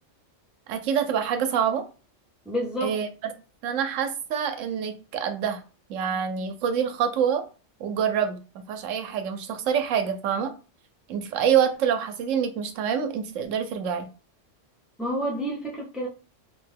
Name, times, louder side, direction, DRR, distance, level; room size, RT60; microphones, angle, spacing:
voice 1, 0.7-1.8 2.8-3.3 3.6-5.6 5.9-7.4 7.8-10.5 11.1-14.1, right 8 dB, 90° right, 8 dB, 0.9 m, -26 dB
voice 2, 2.5-3.0 15.0-16.1, equal, ahead, -2 dB, 0.5 m, -29 dB
2.9 x 2.1 x 3.3 m, 0.34 s
omnidirectional pair, 1.3 m